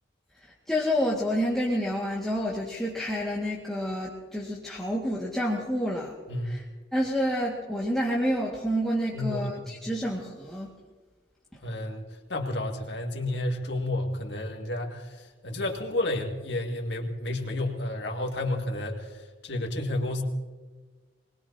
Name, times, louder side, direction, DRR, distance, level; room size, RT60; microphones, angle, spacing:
voice 1, 0.7-6.1 6.5-6.6 6.9-10.7, equal, 5° left, -6 dB, 2.0 m, -28 dB
voice 2, 9.1-9.9 11.6-20.2, left 1 dB, 65° left, 2 dB, 2.2 m, -31 dB
24.0 x 20.5 x 2.9 m, 1.3 s
head